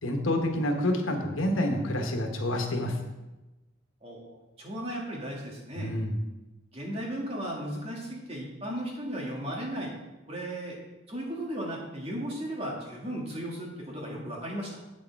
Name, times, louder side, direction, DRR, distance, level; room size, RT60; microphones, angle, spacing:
voice 1, 0.0-3.0 5.8-6.1, left 1 dB, 90° left, 3 dB, 1.3 m, -28 dB
voice 2, 4.0-5.9 6.7-9.9 10.3-10.8 11.1-14.8, right 1 dB, 30° right, -2 dB, 1.9 m, -36 dB
8.3 x 6.5 x 4.7 m, 1.0 s
head